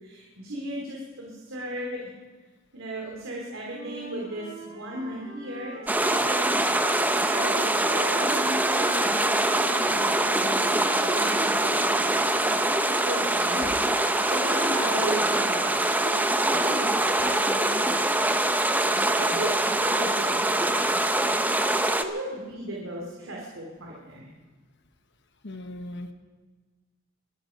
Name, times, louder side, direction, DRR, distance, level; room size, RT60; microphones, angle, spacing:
voice 1, 0.0-2.0 2.7-11.9 12.6-13.7 14.0-15.7 16.0-16.2 16.5-18.0 19.1-20.8 22.0-24.3, right 1 dB, 90° right, -2 dB, 3.0 m, -36 dB
Wind instrument woodwind instrument, 3.7-7.6 7.8-12.1, right 1 dB, 65° right, 7.1 m, -41 dB
sound 1, 5.9-22.0, right 1 dB, 10° right, 0.8 m, -24 dB
voice 2, 25.4-26.1, left 1 dB, 60° left, 6 dB, 1.1 m, -38 dB
23.5 x 11.5 x 5.2 m, 1.3 s
head